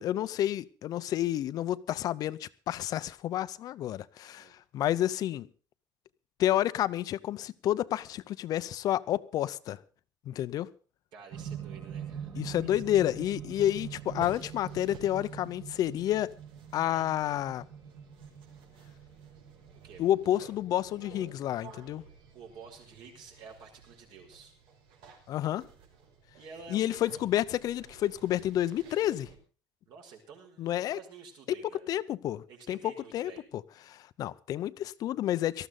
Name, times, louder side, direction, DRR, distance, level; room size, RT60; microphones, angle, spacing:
voice 1, 0.0-5.5 6.4-9.8 10.3-10.7 12.4-16.3 16.7-17.6 20.0-22.0 25.3-25.7 26.7-29.3 30.6-31.0 31.9-33.3 33.9-35.7, left 12 dB, 45° left, 0.7 m, -30 dB
voice 2, 11.1-12.8 16.8-17.1 19.8-20.0 22.3-24.6 26.3-27.0 29.9-31.8 32.5-33.4, right 5 dB, 55° right, 5.4 m, -50 dB
sound 1, 11.3-23.4 24.4-24.5, right 8 dB, 35° right, 2.4 m, -44 dB
sound 2, 13.5-29.4, right 5 dB, 75° right, 5.6 m, -54 dB
19.0 x 14.0 x 3.9 m
cardioid pair, 170°, 9 cm